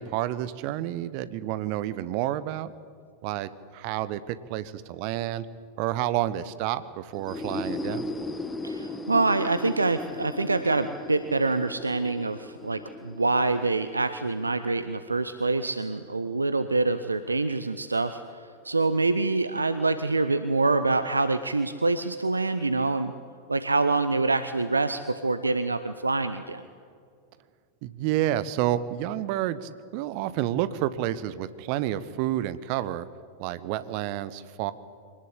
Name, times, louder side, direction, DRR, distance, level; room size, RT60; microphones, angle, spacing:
voice 1, 0.0-2.7 3.2-5.5 5.8-8.0 27.8-33.1 33.4-34.7, right 13 dB, 45° right, 15 dB, 1.1 m, -29 dB
sound 1, 7.1-14.8, left 2 dB, 10° left, 1.4 m, -37 dB
voice 2, 8.6-23.1 23.5-26.6, right 3 dB, 80° right, 11 dB, 0.8 m, -26 dB
24.5 x 19.0 x 8.4 m, 2.2 s
figure-of-eight pair, 90°, 0 cm